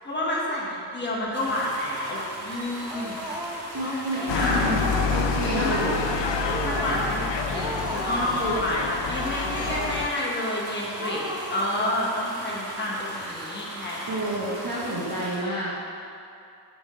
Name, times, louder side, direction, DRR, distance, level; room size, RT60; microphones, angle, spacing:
voice 1, 0.0-3.2 3.8-4.6 5.5-5.8 6.6-14.3, left 1 dB, 25° left, -6 dB, 1.3 m, -29 dB
sound 1, 1.3-15.4, right 1 dB, 35° right, 1.1 m, -38 dB
Speech, 2.9-3.8 4.1-5.3 5.6-6.1 6.4-7.2 7.5-8.7 9.1-10.2 10.5-10.6 10.9-12.0, right 1 dB, 10° right, 0.4 m, -34 dB
voice 2, 3.7-4.8 5.1-6.0 14.0-15.7, right 1 dB, 55° right, -9 dB, 1.1 m, -29 dB
sound 2, 4.3-10.1, left 5 dB, 85° left, 0.5 m, -28 dB
5.0 x 3.8 x 5.0 m, 2.6 s
wide cardioid pair, 100°, 43 cm